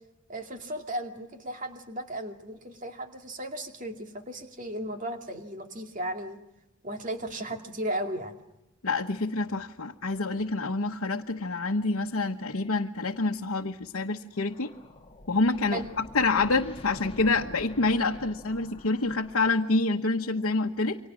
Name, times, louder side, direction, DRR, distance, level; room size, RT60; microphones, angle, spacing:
voice 1, 0.3-6.4 6.8-8.4 15.7-15.9, right 1 dB, 35° right, 5 dB, 2.3 m, -35 dB
voice 2, 8.8-14.7 15.3-21.0, left 3 dB, 75° left, 1 dB, 1.1 m, -27 dB
sound 1, 14.3-19.8, left 1 dB, 25° left, 1.4 m, -47 dB
29.5 x 24.5 x 6.2 m, 0.93 s
head